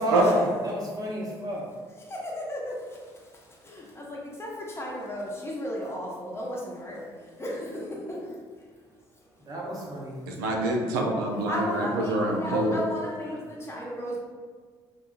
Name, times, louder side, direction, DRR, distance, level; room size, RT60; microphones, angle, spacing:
voice 1, 0.0-1.6 9.4-10.1, equal, 35° right, -4 dB, 0.9 m, -30 dB
voice 2, 2.0-8.7 11.5-14.2, equal, 25° left, -3 dB, 0.8 m, -35 dB
voice 3, 10.3-12.8, right 1 dB, 85° right, 0 dB, 0.4 m, -26 dB
2.7 x 2.2 x 2.4 m, 1.5 s
hypercardioid pair, 55°, 11 cm